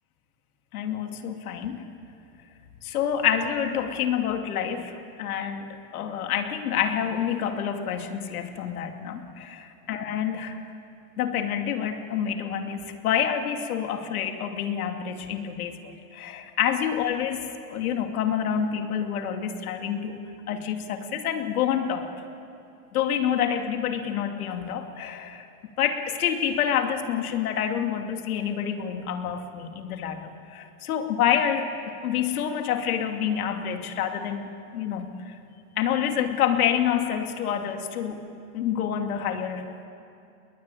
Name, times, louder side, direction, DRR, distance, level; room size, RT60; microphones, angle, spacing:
voice 1, 0.7-1.8 2.8-10.5 11.2-22.1 22.9-25.5 25.8-31.7 32.0-35.3 35.8-38.2 38.5-39.7, left 9 dB, 80° left, 5 dB, 2.6 m, -28 dB
27.5 x 21.5 x 9.2 m, 2.6 s
supercardioid pair, 165°, 43 cm